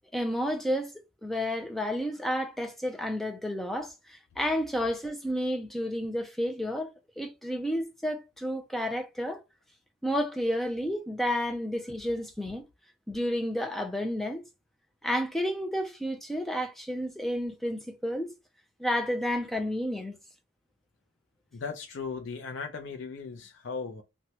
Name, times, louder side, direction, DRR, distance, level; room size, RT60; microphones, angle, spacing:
voice 1, 0.1-0.9 1.2-6.9 7.2-9.4 10.0-12.6 13.1-14.4 15.0-18.3 18.8-20.2, equal, ahead, 0.3 m, -31 dB
voice 2, 21.5-24.0, left 5 dB, 70° left, 0.4 m, -37 dB
3.0 x 2.2 x 2.8 m
head